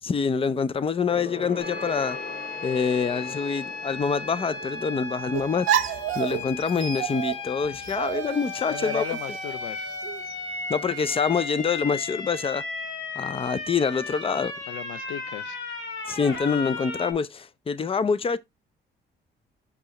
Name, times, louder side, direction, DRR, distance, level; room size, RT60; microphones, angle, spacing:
voice 1, 0.0-2.2 2.6-9.0 10.7-12.6 13.2-14.5 16.1-18.4, left 5 dB, 30° left, 0.6 m, -26 dB
Gong, 1.1-10.8 11.1-11.4 11.7-11.8, left 2 dB, 50° left, 2.8 m, -43 dB
sound 1, 1.6-17.1, left 3 dB, 65° left, 2.8 m, -35 dB
sound 2, 5.3-10.3, right 11 dB, 85° right, 0.6 m, -30 dB
voice 2, 8.7-9.8 14.7-15.6, left 13 dB, 90° left, 0.5 m, -35 dB
6.1 x 5.5 x 2.9 m
cardioid pair, 90°, 20 cm